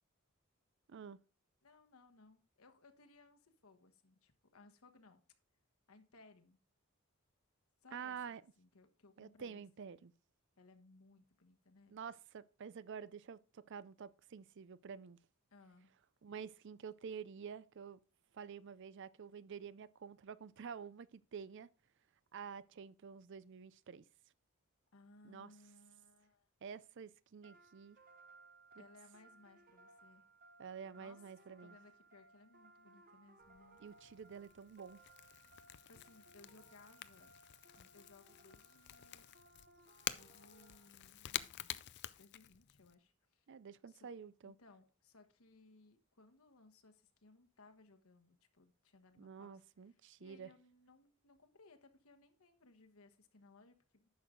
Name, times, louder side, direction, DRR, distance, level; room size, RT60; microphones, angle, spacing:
voice 1, 1.6-5.2 5.9-6.6 7.8-9.6 10.6-12.0 15.5-15.9 24.9-26.5 28.8-30.2 31.0-31.2 31.6-33.8 35.9-37.4 37.8-39.3 40.1-43.5 43.9-44.1 44.4-54.1, left 3 dB, 80° left, 1.3 m, -64 dB
voice 2, 7.9-8.4 9.2-10.1 11.9-15.2 16.2-18.0 18.3-21.7 22.3-24.0 25.2-25.5 26.6-28.0 28.8-28.9 30.6-31.8 33.8-35.0 43.5-44.6 49.2-50.5, right 6 dB, 55° right, 0.4 m, -49 dB
sound 1, 27.4-41.3, right 2 dB, 40° right, 1.2 m, -64 dB
Crackle / Crack, 33.4-42.9, left 12 dB, 55° left, 0.4 m, -49 dB
10.5 x 6.4 x 3.7 m
head